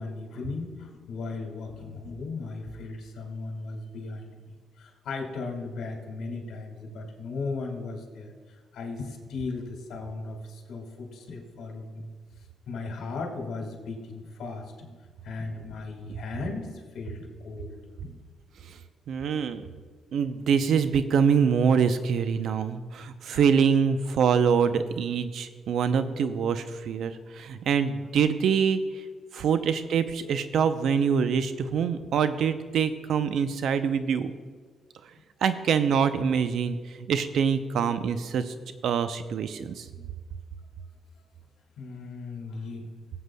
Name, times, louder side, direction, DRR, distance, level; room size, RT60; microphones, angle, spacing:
voice 1, 0.0-12.1 12.7-15.0 15.2-18.2 23.3-23.5 29.4-29.6 35.2-35.3 40.0-40.1 41.8-42.9, left 3 dB, 75° left, 2 dB, 1.8 m, -37 dB
voice 2, 19.1-19.7 20.1-29.0 29.3-34.3 35.4-38.5 38.8-39.9, right 6 dB, 70° right, 11 dB, 0.5 m, -25 dB
17.5 x 7.8 x 2.2 m, 1.5 s
cardioid pair, 90°, 0 cm